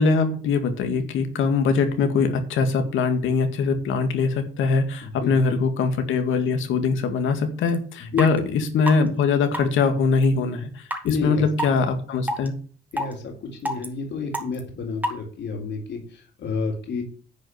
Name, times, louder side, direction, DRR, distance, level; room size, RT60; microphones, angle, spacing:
voice 1, 0.0-12.5, left 4 dB, 80° left, 7 dB, 2.0 m, -22 dB
voice 2, 5.0-5.6 8.0-8.4 11.0-11.4 12.9-17.0, left 4 dB, 65° left, 2 dB, 3.6 m, -30 dB
sound 1, 7.7-7.8 8.2-8.3 8.9-9.0 9.5-9.7 10.2-10.3 10.9-11.1 11.6-11.7 12.3-12.5 12.9-13.1 13.6-13.9 14.3-14.6 15.0-15.1, right 1 dB, 10° right, 2.4 m, -26 dB
10.5 x 4.9 x 8.0 m, 0.42 s
cardioid pair, 90°, 20 cm